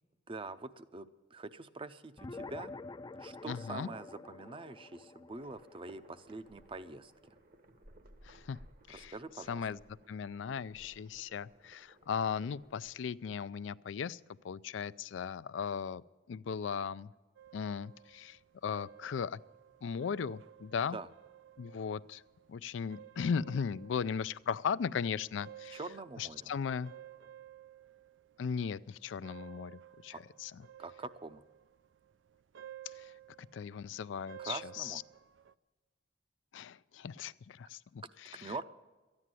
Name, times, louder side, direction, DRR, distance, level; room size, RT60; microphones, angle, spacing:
voice 1, 0.3-2.7 3.2-7.4 8.9-9.6 20.9-21.1 25.7-26.5 30.1-30.2 30.8-31.4 34.4-35.0 38.4-38.6, right 3 dB, 30° right, 12 dB, 0.6 m, -44 dB
sound 1, 2.2-7.0, left 3 dB, 20° left, 0.4 m, -48 dB
voice 2, 3.5-3.9 8.2-8.6 8.9-9.1 9.5-9.8 10.1-14.2 14.4-16.0 16.3-17.1 17.5-19.4 19.8-21.0 21.6-22.2 22.5-25.8 26.2-26.9 28.4-30.1 30.4-30.5 33.0-33.1 33.5-35.0 36.5-38.6, left 6 dB, 90° left, 17 dB, 0.4 m, -37 dB
sound 2, 5.3-13.0, right 1 dB, 55° right, 1.1 m, -60 dB
sound 3, 17.4-35.6, right 11 dB, 80° right, 0.4 m, -55 dB
13.5 x 9.7 x 7.5 m, 1.2 s
head